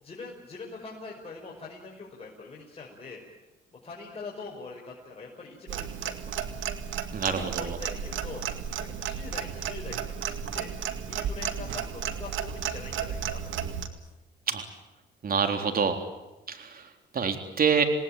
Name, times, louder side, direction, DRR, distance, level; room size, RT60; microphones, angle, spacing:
voice 1, 0.0-3.2 3.8-6.2 7.3-8.4 8.8-10.7 11.1-13.6, left 4 dB, 30° left, -3 dB, 6.0 m, -43 dB
Clock, 5.7-13.9, right 8 dB, 75° right, 2.2 m, -33 dB
voice 2, 7.1-7.8 14.5-14.7 15.2-16.1 16.5-17.8, right 6 dB, 50° right, 6 dB, 3.7 m, -27 dB
28.0 x 19.0 x 9.2 m, 1.0 s
cardioid pair, 90°, 20 cm